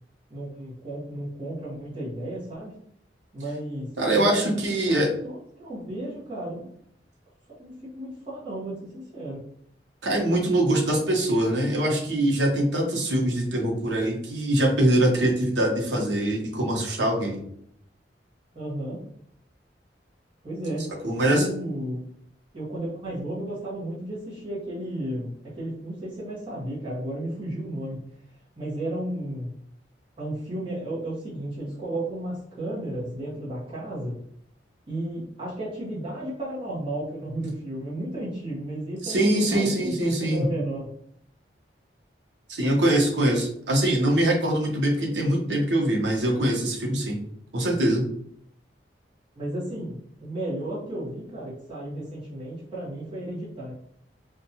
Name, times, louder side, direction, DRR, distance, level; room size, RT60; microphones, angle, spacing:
voice 1, 0.3-2.7 3.3-4.6 4.9-5.0 5.2-6.7 7.6-9.4 18.5-19.0 20.4-20.8 21.2-22.0 22.5-28.0 28.6-29.6 30.2-34.2 34.9-39.9 40.2-40.9 49.4-53.7, right 1 dB, 30° right, -9 dB, 1.0 m, -33 dB
voice 2, 4.0-5.1 10.0-17.4 21.0-21.5 39.0-40.5 42.5-47.2 47.5-48.0, right 1 dB, 90° right, 0 dB, 0.8 m, -23 dB
2.7 x 2.3 x 2.7 m, 0.66 s
head